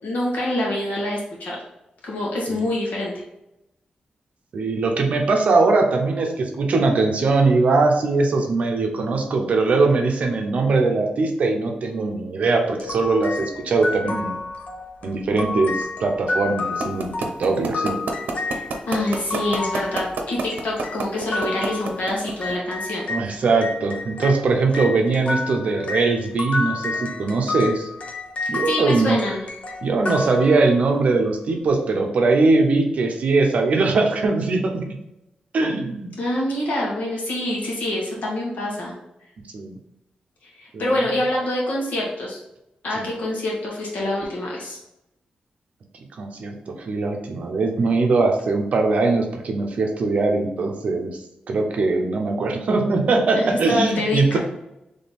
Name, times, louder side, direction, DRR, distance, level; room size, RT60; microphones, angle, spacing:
voice 1, 0.0-1.6 2.0-3.1 18.5-23.1 28.6-29.4 36.2-38.9 40.4-42.4 42.8-44.8 53.3-54.4, left 1 dB, 80° left, -3 dB, 1.6 m, -26 dB
voice 2, 4.5-14.4 15.0-17.1 17.4-17.9 23.1-27.9 28.5-29.2 29.8-34.9 35.5-36.1 39.5-39.8 40.7-41.0 43.0-43.1 46.2-51.2 51.5-54.4, right 3 dB, 55° right, 2 dB, 0.7 m, -21 dB
sound 1, 12.8-23.3 23.6-31.0, left 3 dB, 50° left, 0.7 m, -30 dB
sound 2, 16.8-22.5, right 4 dB, 90° right, 0.7 m, -26 dB
3.7 x 3.3 x 4.2 m, 0.89 s
wide cardioid pair, 175°, 3 cm